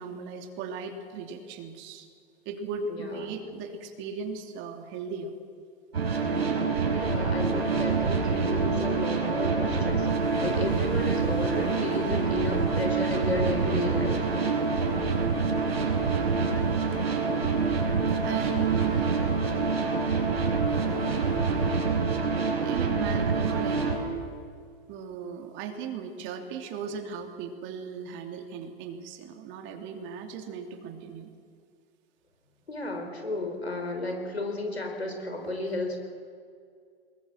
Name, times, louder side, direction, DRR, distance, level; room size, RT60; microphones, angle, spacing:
voice 1, 0.0-2.1 2.4-5.3 14.8-15.3 16.4-16.8 18.2-19.2 20.6-21.3 22.6-23.8 24.9-31.3 35.4-35.5, right 6 dB, 40° right, 5 dB, 2.8 m, -37 dB
voice 2, 2.9-3.2 6.9-14.4 32.7-36.1, left 2 dB, 85° left, 4 dB, 4.5 m, -33 dB
sound 1, 5.9-24.0, right 4 dB, 75° right, 5.4 m, -26 dB
Wind, 6.9-21.7, left 3 dB, 30° left, 6.9 m, -46 dB
23.0 x 21.5 x 7.4 m, 2.2 s
figure-of-eight pair, 100°, 31 cm